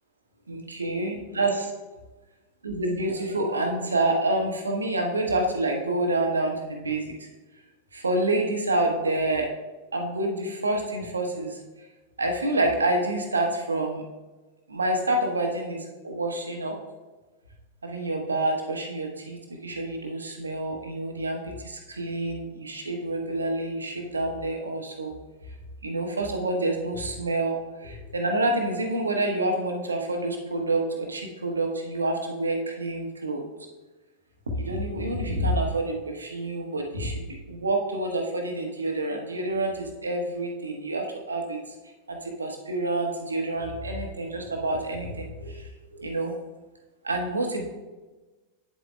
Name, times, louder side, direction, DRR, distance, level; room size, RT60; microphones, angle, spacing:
voice 1, 0.5-1.7 2.6-7.3 7.9-9.5 9.9-11.6 12.2-14.0 14.7-16.7 17.8-25.1 25.8-33.4 34.5-41.6 42.1-46.3 47.0-47.7, right 2 dB, 75° right, 2 dB, 1.0 m, -28 dB
9.1 x 7.5 x 2.3 m, 1.2 s
figure-of-eight pair, 90°, 0 cm